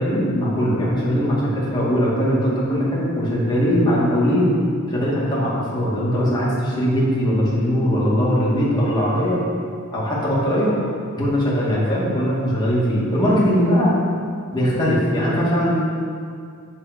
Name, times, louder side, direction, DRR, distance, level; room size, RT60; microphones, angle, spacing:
voice 1, 0.0-4.5 4.9-9.4 9.9-10.7 11.2-13.9 14.5-15.8, equal, 20° left, -8 dB, 2.4 m, -20 dB
8.9 x 6.9 x 5.2 m, 2.2 s
head